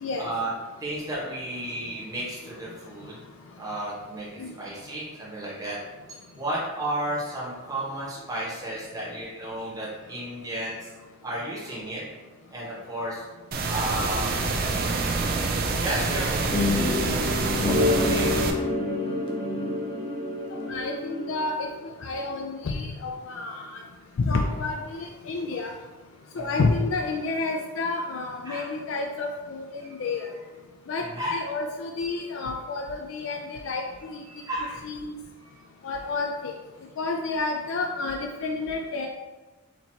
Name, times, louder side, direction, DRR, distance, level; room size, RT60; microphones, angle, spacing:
voice 1, 0.2-0.5 0.8-3.2 3.6-4.3 4.6-5.8 6.1-12.0 12.5-13.3 13.7-18.5 26.3-26.6 28.4-28.7 29.8-30.0 31.0-31.4 34.2-34.8 35.4-35.5, right 1 dB, 20° right, -8 dB, 1.2 m, -33 dB
sound 1, 13.5-18.5, right 3 dB, 45° right, 0.4 m, -27 dB
sound 2, 16.5-21.6, left 2 dB, 25° left, 0.7 m, -27 dB
voice 2, 20.7-23.7 24.3-25.7 26.4-30.3 30.9-31.0 31.3-34.2 34.8-35.1 35.8-36.5 37.0-39.1, left 3 dB, 70° left, 2 dB, 0.4 m, -30 dB
4.4 x 3.9 x 2.8 m, 1.2 s
head